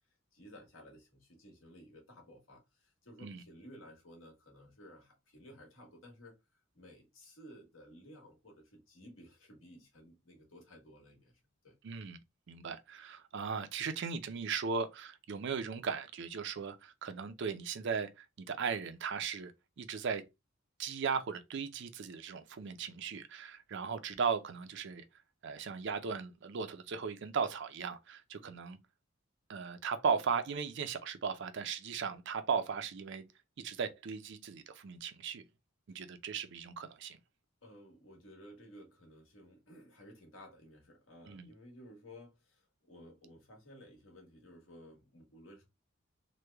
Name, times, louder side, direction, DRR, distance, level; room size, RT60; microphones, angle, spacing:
voice 1, 0.3-11.8 35.9-36.0 37.6-45.7, equal, 75° left, 1.3 m, -55 dB
voice 2, 11.8-12.2 12.5-19.5 19.8-20.2 20.8-25.0 25.4-28.8 29.5-33.2 33.6-35.4 35.9-37.2 41.3-41.5, right 6 dB, 60° right, 0.5 m, -37 dB
3.1 x 2.2 x 3.3 m
head